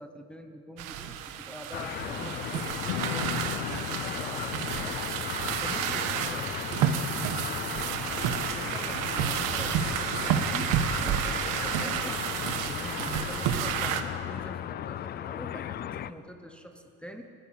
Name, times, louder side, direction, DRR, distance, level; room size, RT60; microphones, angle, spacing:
voice 1, 0.0-5.0 5.5-6.5 8.6-12.2 12.6-17.2, equal, 5° left, 4 dB, 0.9 m, -45 dB
sound 1, 0.8-14.0, right 9 dB, 70° right, 1.5 m, -30 dB
sound 2, 1.7-16.1, left 11 dB, 30° left, 0.4 m, -36 dB
Strum, 2.8-9.1, left 12 dB, 80° left, 1.0 m, -40 dB
30.0 x 11.5 x 8.7 m, 2.8 s
cardioid pair, 160°, 33 cm